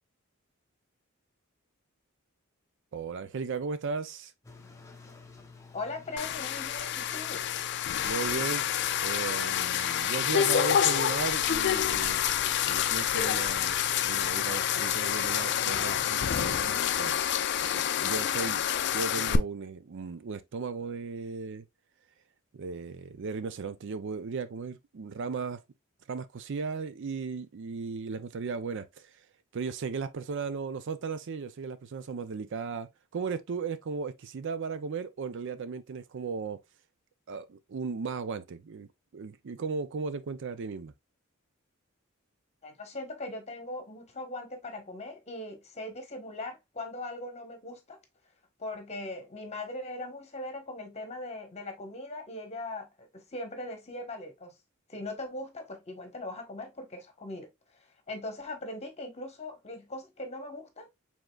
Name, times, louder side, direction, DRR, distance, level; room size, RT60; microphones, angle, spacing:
voice 1, 2.9-4.3 8.0-8.6 9.0-12.2 12.6-17.1 17.6-18.6 18.9-21.7 22.5-25.6 26.1-29.1 29.5-36.6 37.3-40.9, right 5 dB, 60° right, 0.5 m, -36 dB
sound 1, 4.4-16.2, left 4 dB, 15° left, 0.8 m, -49 dB
voice 2, 5.7-7.4 42.6-48.0 48.6-54.5 54.9-57.5 58.1-60.9, left 2 dB, 30° left, 1.2 m, -40 dB
sound 2, 6.2-19.4, left 10 dB, 55° left, 0.4 m, -28 dB
5.0 x 3.6 x 2.3 m
head